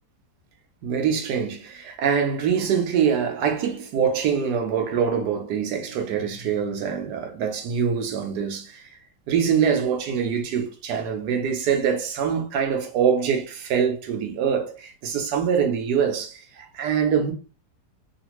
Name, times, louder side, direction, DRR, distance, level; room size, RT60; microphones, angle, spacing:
voice 1, 0.8-8.9 9.3-17.3, right 7 dB, 70° right, 1.2 m, -24 dB
3.1 x 2.5 x 3.0 m
omnidirectional pair, 2.0 m